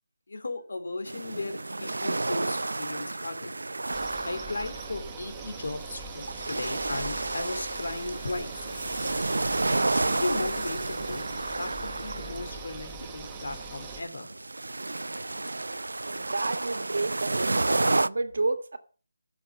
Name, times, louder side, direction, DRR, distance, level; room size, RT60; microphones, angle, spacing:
voice 1, 0.3-3.7 4.2-8.7 10.0-11.3 11.6-14.3 15.4-15.5, left 2 dB, 75° left, 2.8 m, -36 dB
sound 1, 1.1-18.1, right 2 dB, 90° right, 0.5 m, -31 dB
sound 2, 3.9-14.0, right 4 dB, 15° right, 1.1 m, -42 dB
voice 2, 16.0-18.8, right 3 dB, 75° right, 1.8 m, -31 dB
12.0 x 7.1 x 7.2 m
figure-of-eight pair, 165°, 0 cm